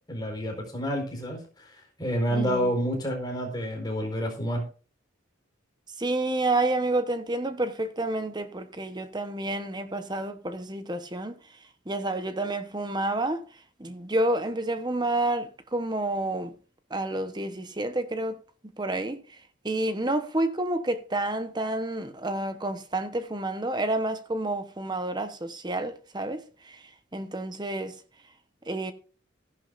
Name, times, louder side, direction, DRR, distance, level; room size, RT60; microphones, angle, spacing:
voice 1, 0.1-4.6, equal, 20° left, 4.5 m, -29 dB
voice 2, 2.3-2.7 6.0-11.4 11.9-13.4 13.8-16.5 16.9-18.4 18.8-19.4 19.6-27.9 28.7-28.9, right 2 dB, 20° right, 1.0 m, -29 dB
15.0 x 11.0 x 2.6 m
head